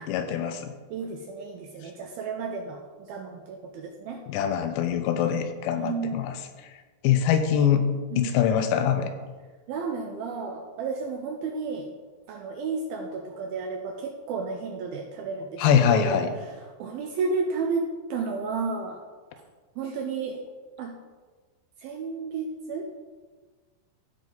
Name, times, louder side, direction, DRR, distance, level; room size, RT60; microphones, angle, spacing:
voice 1, 0.1-0.7 4.3-6.4 7.0-7.9 8.2-9.1 15.6-16.3, left 8 dB, 85° left, 8 dB, 2.9 m, -23 dB
voice 2, 0.9-4.2 5.7-6.3 8.1-8.4 9.7-11.9 12.3-19.0 19.8-20.4 20.8-21.0 21.8-23.0, right 4 dB, 80° right, 3 dB, 2.2 m, -32 dB
15.5 x 5.4 x 3.9 m, 1.4 s
omnidirectional pair, 5.0 m